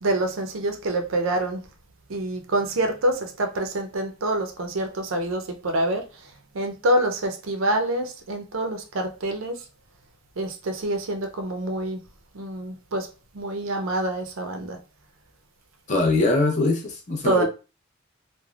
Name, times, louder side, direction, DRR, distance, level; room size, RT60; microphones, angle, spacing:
voice 1, 0.0-1.6 2.1-6.0 6.5-9.6 10.4-12.0 12.3-13.1 13.3-14.8 17.2-17.4, right 1 dB, 85° right, 0.6 m, -26 dB
voice 2, 15.9-17.4, left 2 dB, 40° left, 0.7 m, -22 dB
3.2 x 2.1 x 2.3 m
head